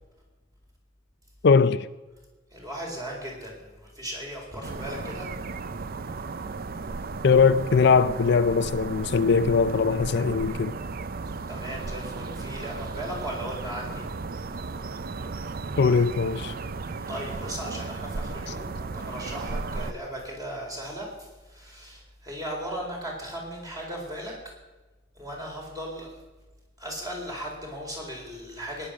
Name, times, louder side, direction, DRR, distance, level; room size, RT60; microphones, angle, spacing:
voice 1, 1.4-1.9 7.2-10.7 15.8-16.5 18.5-18.6, left 5 dB, 60° left, 0.5 m, -21 dB
voice 2, 2.5-5.3 11.5-14.1 16.8-24.4 25.1-26.1 26.8-28.9, equal, 20° right, 4.4 m, -37 dB
sound 1, 4.6-19.9, right 3 dB, 50° right, 0.6 m, -35 dB
18.0 x 10.0 x 6.4 m
head